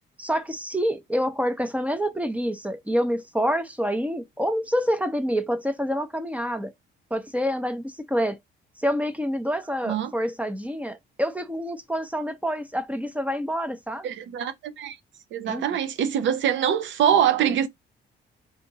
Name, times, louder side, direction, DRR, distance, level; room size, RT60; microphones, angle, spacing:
voice 1, 0.2-6.7 7.1-8.4 8.8-14.1 15.4-15.6, equal, 5° right, 0.6 m, -27 dB
voice 2, 14.0-15.0 15.3-17.7, right 9 dB, 70° right, 0.5 m, -24 dB
2.7 x 2.5 x 3.8 m
cardioid pair, 90°, 20 cm